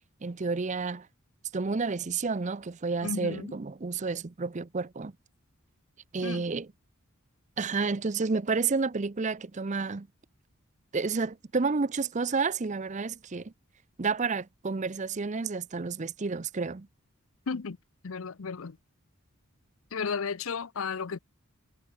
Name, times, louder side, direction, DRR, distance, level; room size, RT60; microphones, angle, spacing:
voice 1, 0.2-1.1 1.5-5.1 6.1-6.7 7.6-10.1 10.9-13.5 14.0-16.9, right 4 dB, 35° right, 0.5 m, -30 dB
voice 2, 3.0-3.5 6.2-6.4 17.5-17.8 18.0-18.8 19.9-21.2, left 5 dB, 70° left, 0.6 m, -34 dB
head